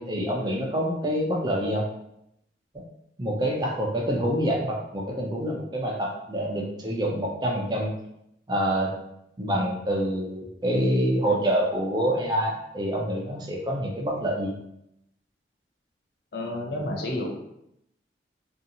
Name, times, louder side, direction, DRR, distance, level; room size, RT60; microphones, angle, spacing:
voice 1, 0.0-1.9 2.7-2.8 3.2-7.9 8.5-8.9 9.4-14.5, equal, 25° right, -1 dB, 0.4 m, -26 dB
voice 2, 16.3-17.3, left 1 dB, 60° left, 0 dB, 0.5 m, -30 dB
2.6 x 2.4 x 2.7 m, 0.79 s
head